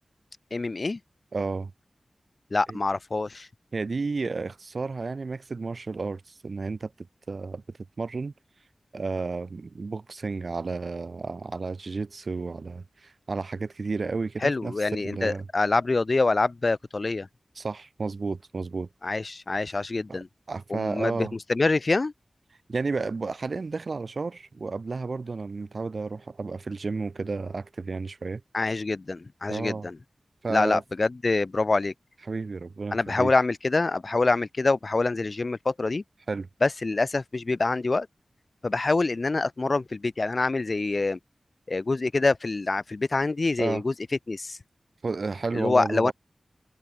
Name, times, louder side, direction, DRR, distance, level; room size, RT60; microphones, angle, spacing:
voice 1, 0.5-1.0 2.5-3.5 14.4-17.3 19.0-20.3 20.7-22.1 28.5-30.0 30.5-31.9 32.9-36.0 36.6-38.1 38.6-41.2 41.7-43.9 44.3-44.6 45.5-46.1, left 3 dB, 55° left, 1.0 m, -25 dB
voice 2, 1.3-1.7 2.7-2.8 3.7-8.3 8.9-14.7 15.0-15.5 17.6-18.9 20.1-20.2 20.5-21.3 22.7-28.4 29.5-29.9 30.4-30.8 32.3-33.3 36.3-36.5 43.6-43.8 45.0-46.1, right 4 dB, 70° right, 4.5 m, -32 dB
cardioid pair, 50°, 0 cm